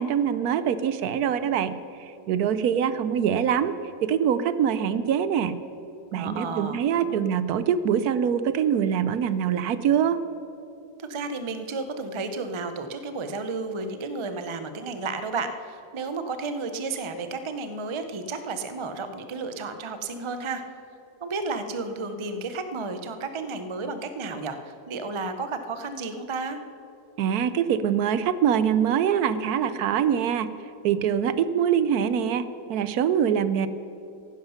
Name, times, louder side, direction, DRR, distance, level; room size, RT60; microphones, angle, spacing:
voice 1, 0.0-3.7 4.0-5.6 6.1-10.2 27.2-30.5 30.8-33.7, right 8 dB, 70° right, 13 dB, 1.1 m, -24 dB
voice 2, 6.1-7.3 11.0-20.6 21.2-26.6, right 3 dB, 40° right, 9 dB, 0.4 m, -32 dB
15.5 x 11.5 x 5.7 m, 2.9 s
omnidirectional pair, 1.7 m